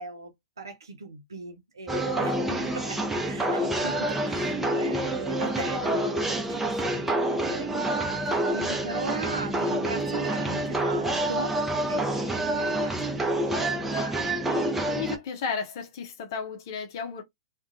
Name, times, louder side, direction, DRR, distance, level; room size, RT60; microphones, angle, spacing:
voice 1, 0.0-11.6 11.9-13.2 13.5-14.0, right 4 dB, 80° right, 0.5 m, -39 dB
sound 1, 1.9-15.2, right 1 dB, 10° right, 0.6 m, -27 dB
voice 2, 15.0-17.2, left 6 dB, 55° left, 0.6 m, -33 dB
2.4 x 2.1 x 2.5 m
figure-of-eight pair, 105°, 2 cm